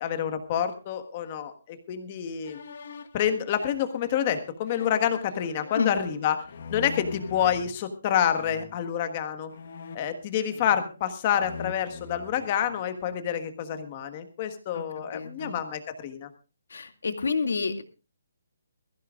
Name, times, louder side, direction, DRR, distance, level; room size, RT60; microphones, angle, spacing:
voice 1, 0.0-2.6 3.1-6.4 6.7-9.5 9.9-16.3, left 9 dB, 20° left, 8 dB, 1.4 m, -28 dB
sound 1, 2.4-7.7 8.3-8.8 9.5-11.0 11.3-13.2, left 4 dB, 40° left, 1.3 m, -43 dB
voice 2, 15.1-15.5 16.7-17.8, left 5 dB, 65° left, 6 dB, 2.3 m, -29 dB
21.0 x 15.0 x 2.4 m, 0.31 s
hypercardioid pair, 175°, 0 cm